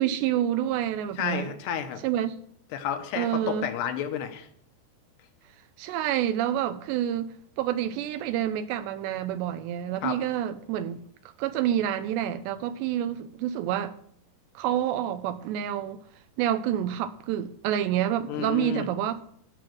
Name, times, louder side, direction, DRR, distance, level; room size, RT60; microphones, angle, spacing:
voice 1, 0.0-1.5 2.0-2.4 3.1-3.7 5.8-11.0 11.4-13.9 14.6-16.0 16.4-19.2, right 11 dB, 80° right, 2.8 m, -28 dB
voice 2, 1.2-2.0 2.7-4.5 10.0-10.2 18.3-18.9, left 9 dB, 75° left, 3.0 m, -31 dB
13.5 x 6.0 x 7.8 m
omnidirectional pair, 5.1 m